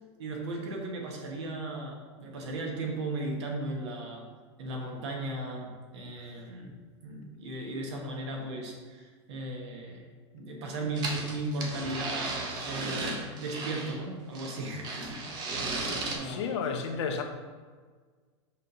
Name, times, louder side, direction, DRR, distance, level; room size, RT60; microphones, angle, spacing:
voice 1, 0.2-4.3 4.6-6.7 7.0-10.1 10.3-17.0, right 2 dB, 75° right, 0 dB, 1.5 m, -37 dB
sound 1, 11.0-14.0 14.3-16.2, right 3 dB, 30° right, 0.9 m, -35 dB
voice 2, 16.2-17.2, left 6 dB, 75° left, 4 dB, 0.9 m, -32 dB
5.4 x 3.3 x 5.3 m, 1.5 s
supercardioid pair, 155°, 15 cm